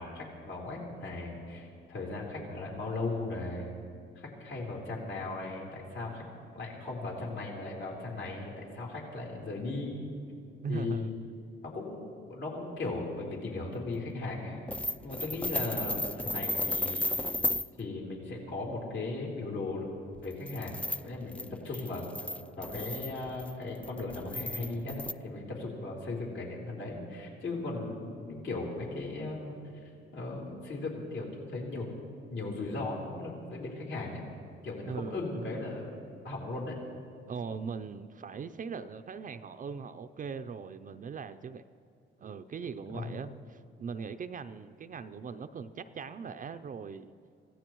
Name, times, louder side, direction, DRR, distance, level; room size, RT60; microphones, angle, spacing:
voice 1, 0.0-3.7 4.2-10.1 10.7-11.1 11.6-14.6 15.0-17.1 17.8-19.9 20.2-20.7 21.0-22.1 22.6-31.9 32.3-34.2 34.6-35.9 36.2-36.8 42.9-43.1, left 2 dB, 65° left, -3 dB, 3.8 m, -37 dB
voice 2, 10.6-11.1 34.9-35.5 37.3-41.6 42.2-47.1, right 5 dB, 40° right, 9 dB, 0.5 m, -40 dB
sound 1, 14.7-17.7 20.2-25.1, left 1 dB, 5° left, 0.4 m, -34 dB
25.5 x 16.5 x 3.1 m, 2.5 s
cardioid pair, 90°, 20 cm